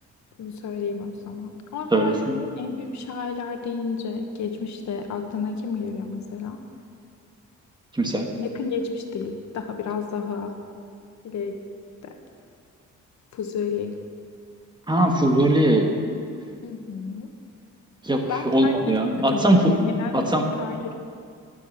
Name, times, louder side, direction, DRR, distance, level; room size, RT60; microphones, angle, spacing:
voice 1, 0.4-2.2 2.6-6.6 8.4-10.6 11.2-11.6 12.0-12.2 13.3-14.0 16.6-17.3 18.3-20.9, left 5 dB, 65° left, 5 dB, 1.2 m, -31 dB
voice 2, 1.9-2.4 7.9-8.3 14.9-15.9 18.0-19.7 20.1-20.5, right 1 dB, 15° right, 2 dB, 1.4 m, -20 dB
12.0 x 6.8 x 7.3 m, 2.3 s
cardioid pair, 90°, 30 cm